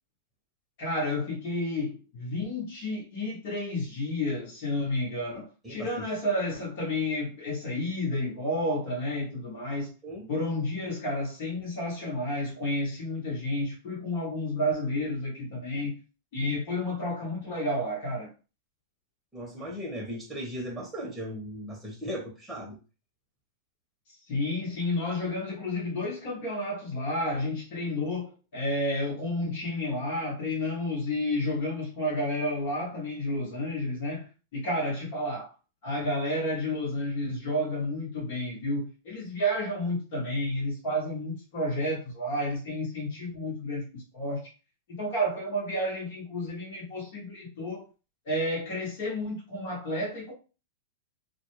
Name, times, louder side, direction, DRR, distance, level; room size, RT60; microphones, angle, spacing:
voice 1, 0.8-9.9 10.3-16.0 16.3-18.3 24.3-35.5 35.8-44.5 44.9-47.8 48.2-50.3, left 1 dB, 60° left, 1.1 m, -31 dB
voice 2, 5.6-6.1 10.0-10.3 19.3-22.8, equal, 10° right, 0.9 m, -37 dB
2.3 x 2.1 x 3.1 m
hypercardioid pair, 105°, 0 cm